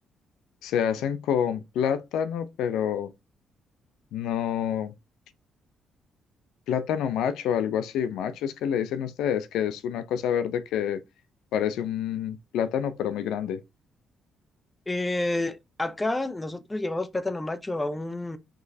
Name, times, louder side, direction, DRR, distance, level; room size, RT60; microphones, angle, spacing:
voice 1, 0.6-3.1 4.1-4.9 6.7-11.0 11.5-13.6, left 9 dB, 85° left, 0.5 m, -27 dB
voice 2, 14.9-18.4, left 2 dB, 15° left, 0.7 m, -29 dB
6.0 x 3.0 x 2.7 m
cardioid pair, 90°, 0 cm